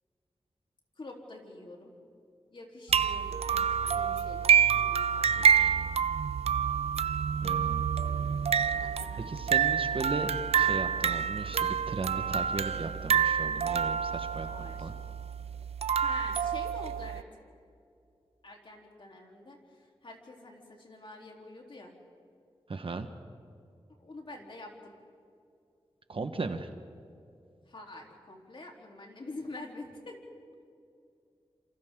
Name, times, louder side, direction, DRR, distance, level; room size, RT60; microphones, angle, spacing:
voice 1, 1.0-2.0 2.5-5.8 8.7-9.3 14.4-14.9 16.0-17.2 18.4-22.0 24.0-24.9 27.6-30.2, left 2 dB, 55° left, 0 dB, 3.7 m, -47 dB
sound 1, 2.9-17.2, right 8 dB, 85° right, 0.5 m, -28 dB
voice 2, 7.4-7.9 9.3-14.5 14.8-14.9 22.7-23.1 26.1-26.7, right 3 dB, 60° right, 8 dB, 1.4 m, -36 dB
27.5 x 27.0 x 3.9 m, 2.4 s
cardioid pair, 55°, 10 cm